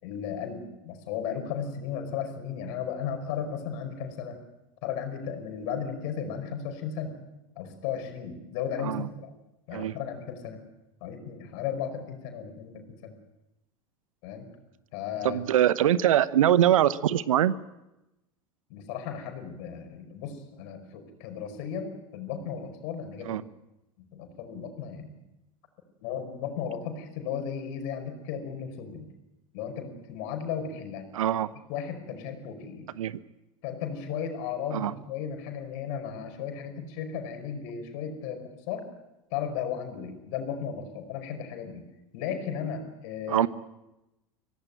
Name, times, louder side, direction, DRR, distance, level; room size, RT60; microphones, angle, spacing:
voice 1, 0.0-4.4 4.8-7.1 7.5-9.4 9.7-10.6 11.0-13.1 14.2-14.5 14.9-15.4 18.7-23.4 24.1-25.2 26.0-29.0 29.5-31.0 31.7-32.9 33.6-38.8 39.3-41.8 42.1-43.5, left 7 dB, 55° left, 7 dB, 5.3 m, -35 dB
voice 2, 15.2-17.5 23.3-23.4 31.1-31.5 33.0-33.2 34.7-34.9 43.3-43.5, right 11 dB, 70° right, 17 dB, 1.0 m, -23 dB
24.5 x 17.5 x 9.1 m, 0.94 s
figure-of-eight pair, 85°, 18 cm